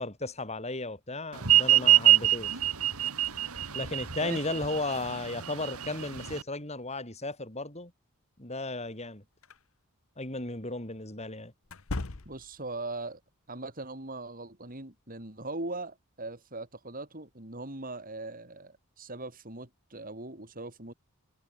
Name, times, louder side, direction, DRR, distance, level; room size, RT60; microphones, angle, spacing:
voice 1, 0.0-2.6 3.7-7.9 8.4-9.2 10.2-11.5, left 2 dB, 30° left, 5.5 m, -35 dB
sound 1, 1.4-6.4, right 13 dB, 80° right, 2.8 m, -24 dB
voice 2, 4.2-4.6 12.2-13.2 13.5-20.9, right 2 dB, 40° right, 4.4 m, -40 dB
sound 2, 9.4-9.6 11.6-12.7, left 2 dB, 70° left, 1.2 m, -37 dB
head